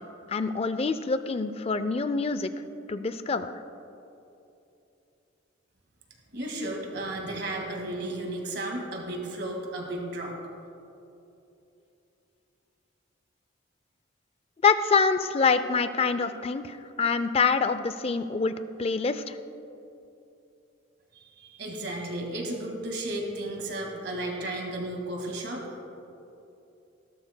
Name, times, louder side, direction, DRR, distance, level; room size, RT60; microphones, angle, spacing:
voice 1, 0.3-2.5 2.9-3.5 14.6-19.4, left 5 dB, 30° left, 12 dB, 0.4 m, -26 dB
voice 2, 6.3-10.4 21.2-25.6, right 1 dB, 55° right, 1 dB, 1.9 m, -34 dB
18.5 x 11.5 x 2.2 m, 2.8 s
head